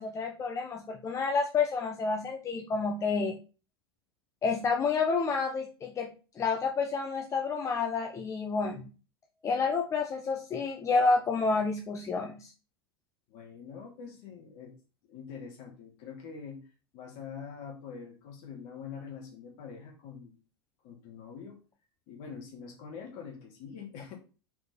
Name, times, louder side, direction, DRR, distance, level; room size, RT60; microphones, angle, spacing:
voice 1, 0.0-3.4 4.4-6.1 6.4-8.8 9.4-12.5, left 4 dB, 25° left, 3 dB, 1.0 m, -29 dB
voice 2, 13.3-14.7 15.1-16.6 16.9-20.4 20.8-21.6 22.1-24.1, left 6 dB, 45° left, 2 dB, 2.6 m, -44 dB
6.2 x 5.0 x 5.1 m, 0.34 s
figure-of-eight pair, 85°, 13 cm